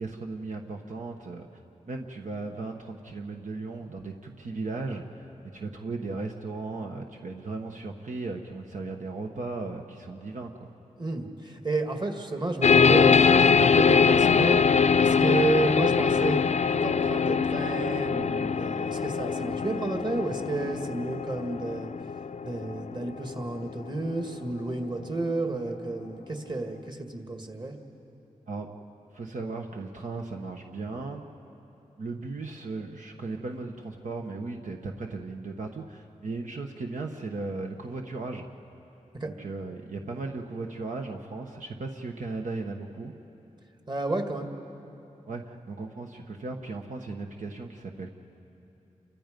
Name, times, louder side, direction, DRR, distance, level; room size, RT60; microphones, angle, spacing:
voice 1, 0.0-1.6 1.9-10.7 28.5-28.7 29.1-31.3 32.0-38.4 39.2-43.1 45.3-48.1, right 3 dB, 65° right, 2 dB, 1.2 m, -36 dB
voice 2, 11.0-14.6 15.0-21.9 22.4-27.8 39.2-39.3 43.9-44.5, right 2 dB, 35° right, 4 dB, 2.0 m, -31 dB
sound 1, 12.6-23.8, left 6 dB, 55° left, 0.5 m, -23 dB
29.0 x 23.5 x 5.3 m, 3.0 s
cardioid pair, 70°, 14 cm